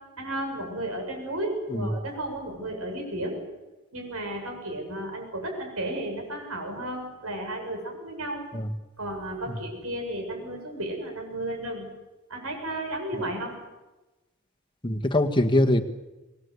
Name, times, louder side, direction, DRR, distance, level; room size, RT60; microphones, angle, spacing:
voice 1, 0.2-3.4 3.9-8.5 9.0-11.9 12.3-13.6, right 1 dB, 75° right, 3 dB, 7.8 m, -33 dB
voice 2, 14.8-15.8, left 1 dB, 20° left, 5 dB, 1.6 m, -22 dB
25.0 x 20.5 x 8.2 m, 1.1 s
head